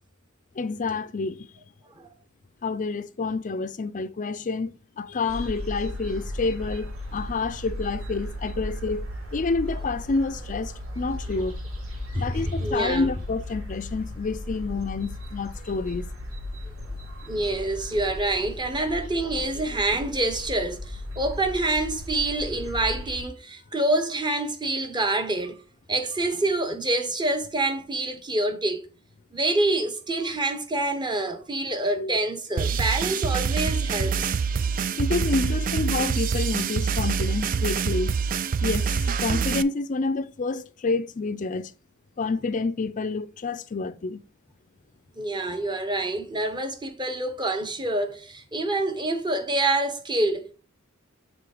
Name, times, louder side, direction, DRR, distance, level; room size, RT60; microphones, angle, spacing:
voice 1, 0.6-1.5 2.6-11.6 12.1-16.1 31.9-32.1 35.0-38.1 38.6-41.7 42.2-44.2, left 3 dB, 40° left, 0.4 m, -28 dB
sound 1, 5.3-23.2, left 1 dB, 85° right, 2.5 m, -36 dB
voice 2, 12.1-13.1 16.6-16.7 17.2-25.6 25.9-28.9 29.3-34.3 45.2-50.5, right 2 dB, 20° right, 1.0 m, -27 dB
sound 2, 32.6-39.6, right 6 dB, 40° right, 0.3 m, -25 dB
7.0 x 3.7 x 4.8 m
head